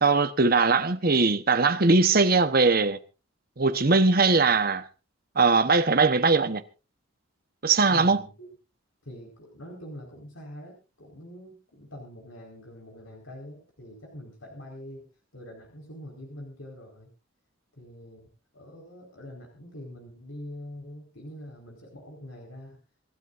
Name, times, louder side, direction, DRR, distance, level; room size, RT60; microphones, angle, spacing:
voice 1, 0.0-3.0 3.6-4.8 5.4-6.6 7.6-8.2, right 4 dB, 45° right, 1.1 m, -20 dB
voice 2, 7.9-8.5 9.0-17.1 17.7-18.3 18.5-22.8, left 1 dB, 85° left, 4.7 m, -44 dB
26.5 x 12.5 x 2.6 m
head